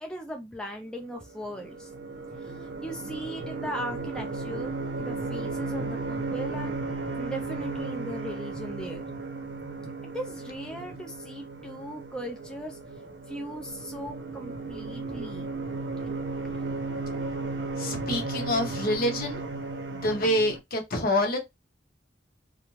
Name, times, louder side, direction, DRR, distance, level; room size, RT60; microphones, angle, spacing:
voice 1, 0.0-1.9 2.4-4.7 5.0-6.8 7.2-9.0 10.1-12.8 13.3-15.5, equal, 5° left, 0.4 m, -38 dB
sound 1, 1.1-20.6, right 3 dB, 90° right, 0.6 m, -35 dB
voice 2, 17.8-19.4 19.9-21.4, left 1 dB, 55° left, 0.8 m, -27 dB
2.3 x 2.2 x 3.0 m
head